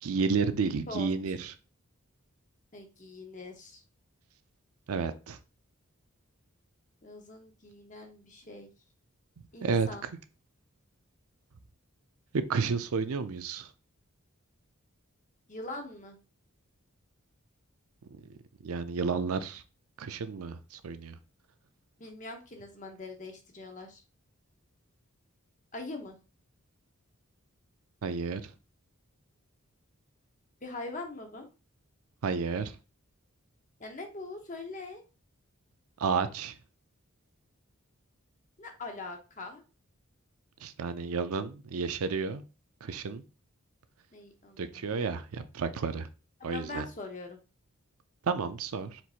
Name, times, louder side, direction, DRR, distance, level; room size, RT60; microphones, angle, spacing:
voice 1, 0.0-1.5 4.9-5.4 9.6-9.9 12.3-13.7 18.6-19.6 20.0-21.1 28.0-28.5 32.2-32.7 36.0-36.5 40.6-42.4 42.8-43.2 44.6-46.1 46.4-46.8 48.3-49.0, right 5 dB, 75° right, 10 dB, 0.5 m, -31 dB
voice 2, 2.7-3.8 7.0-8.7 9.5-10.0 15.5-16.2 22.0-24.0 25.7-26.2 30.6-31.5 33.8-35.0 38.6-39.6 44.1-44.9 46.4-47.4, left 2 dB, 35° left, 4 dB, 0.8 m, -42 dB
4.5 x 4.1 x 2.4 m, 0.32 s
head